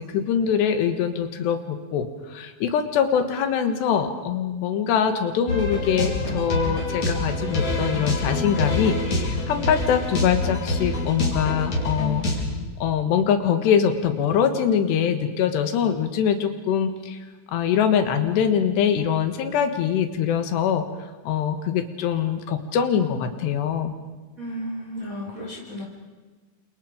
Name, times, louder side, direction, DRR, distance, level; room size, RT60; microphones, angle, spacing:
voice 1, 0.0-12.3 12.8-17.2 17.5-20.8 21.3-23.9, left 8 dB, 80° left, 8 dB, 3.7 m, -23 dB
sound 1, 5.5-12.4, left 2 dB, 45° left, 5.7 m, -26 dB
voice 2, 24.3-25.8, equal, 20° right, -3 dB, 4.1 m, -33 dB
29.5 x 27.5 x 5.1 m, 1.3 s
omnidirectional pair, 4.8 m